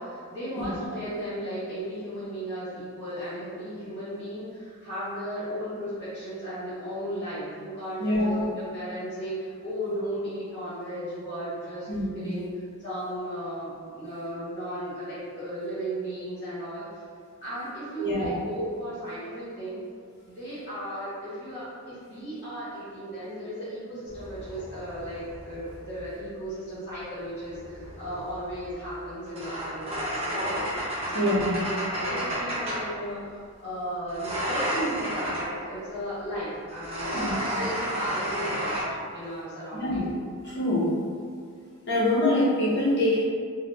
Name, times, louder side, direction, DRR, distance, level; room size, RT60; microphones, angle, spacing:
voice 1, 0.0-11.9 12.1-12.5 12.8-17.0 17.4-19.8 20.2-30.6 31.0-31.4 31.7-38.8 39.1-40.0, equal, 30° left, -14 dB, 1.3 m, -35 dB
voice 2, 8.0-8.5 11.9-12.4 18.0-18.3 31.1-31.5 37.1-37.3 39.7-40.1 40.4-40.9 41.9-43.2, left 1 dB, 50° left, -8 dB, 0.7 m, -25 dB
sound 1, 24.1-26.2 27.4-32.9 34.1-35.6 36.7-38.8, equal, 25° right, 0.8 m, -32 dB
4.0 x 2.0 x 2.8 m, 2.1 s
head